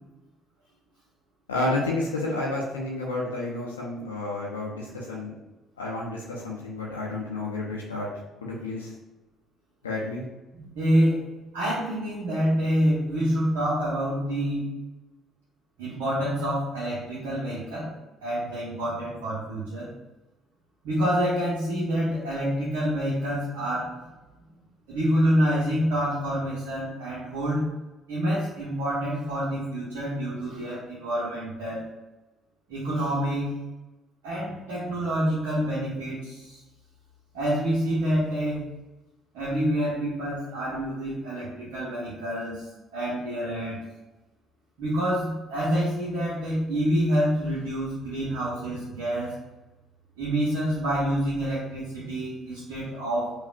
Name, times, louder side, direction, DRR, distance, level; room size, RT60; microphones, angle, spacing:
voice 1, 1.5-5.4 5.8-8.1 8.4-8.9 9.8-10.2, left 2 dB, 85° left, -4 dB, 0.5 m, -30 dB
voice 2, 10.5-11.3 11.5-14.7 15.8-17.9 18.2-19.9 20.8-24.0 24.9-27.7 28.1-31.9 32.7-33.5 34.2-36.6 37.3-38.7 39.3-42.7 42.9-43.8 44.8-49.3 50.2-53.3, equal, 65° right, -8 dB, 0.9 m, -27 dB
5.0 x 2.4 x 2.4 m, 1.1 s
figure-of-eight pair, 50°, 0 cm